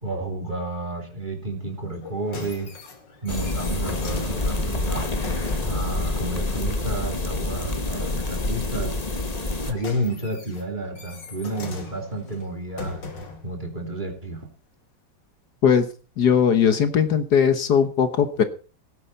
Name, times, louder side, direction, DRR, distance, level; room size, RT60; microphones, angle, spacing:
voice 1, 0.0-2.7 3.2-5.1 5.7-8.9 9.6-13.0 13.4-14.5, right 1 dB, 25° right, 2 dB, 3.1 m, -31 dB
sound 1, 1.9-6.0 9.3-13.5 14.3-14.4, left 3 dB, 85° left, 2.9 m, -39 dB
sound 2, 3.3-9.7, left 2 dB, 25° left, 1.4 m, -27 dB
voice 2, 16.2-18.4, left 7 dB, 65° left, 10 dB, 1.7 m, -19 dB
17.5 x 10.5 x 4.1 m, 0.36 s
omnidirectional pair, 1.9 m